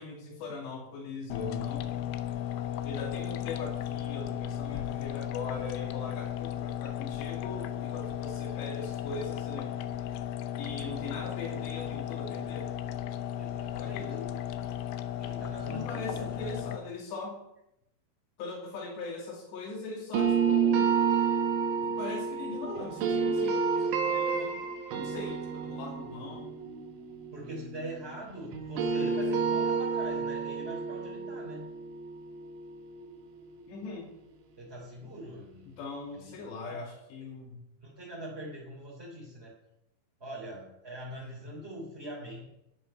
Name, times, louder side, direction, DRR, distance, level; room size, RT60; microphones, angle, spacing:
voice 1, 0.0-2.2 2.8-9.7 10.6-12.7 13.8-14.3 15.4-17.4 18.4-21.0 21.8-24.6 24.9-26.6 29.0-29.1 33.7-34.1 35.7-37.6 41.0-41.4, left 3 dB, 70° left, 1 dB, 4.8 m, -41 dB
sound 1, 1.3-16.8, left 11 dB, 85° left, 3.2 m, -35 dB
voice 2, 13.4-14.2 15.2-16.6 27.3-31.7 34.6-35.7 36.1-36.9 37.8-39.5 40.2-42.4, right 1 dB, 15° right, -7 dB, 2.8 m, -43 dB
sound 2, 20.1-28.2 28.5-33.5, right 5 dB, 80° right, 3.8 m, -30 dB
13.5 x 10.5 x 5.6 m, 0.83 s
omnidirectional pair, 5.4 m